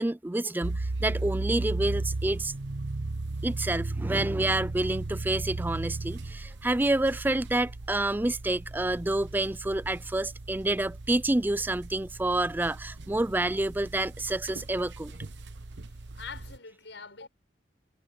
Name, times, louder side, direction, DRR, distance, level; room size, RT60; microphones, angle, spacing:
voice 1, 0.0-2.5 3.4-15.1, right 2 dB, 10° right, 0.4 m, -28 dB
sound 1, 0.6-16.6, right 2 dB, 70° right, 1.0 m, -36 dB
voice 2, 15.8-17.3, left 5 dB, 75° left, 5.8 m, -44 dB
head